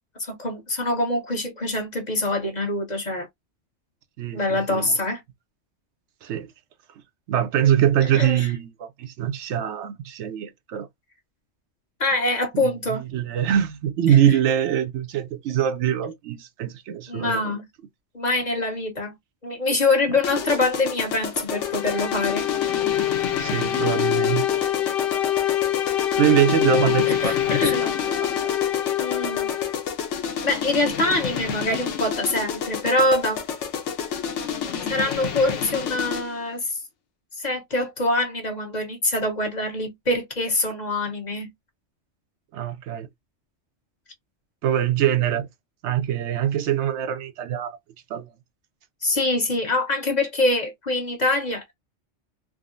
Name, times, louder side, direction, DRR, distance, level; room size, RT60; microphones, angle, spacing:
voice 1, 0.2-3.3 4.3-5.2 8.1-8.5 12.0-13.0 14.1-14.4 17.1-17.6 18.1-19.1 19.4-22.5 27.1-27.8 29.0-29.5 30.4-33.4 34.9-36.8 37.4-41.5 49.0-51.6, left 2 dB, 40° left, 1.0 m, -24 dB
voice 2, 4.2-5.0 6.2-6.5 7.3-10.9 12.5-12.7 13.1-17.6 23.4-24.7 26.2-27.4 27.8-27.9 28.2-28.5 42.5-43.1 44.6-45.5 45.8-47.8 48.1-48.3, right 10 dB, 75° right, 0.9 m, -23 dB
sound 1, 20.2-36.4, left 7 dB, 90° left, 1.0 m, -30 dB
sound 2, 21.5-29.9, left 12 dB, 60° left, 0.7 m, -25 dB
3.6 x 2.0 x 2.4 m
omnidirectional pair, 1.2 m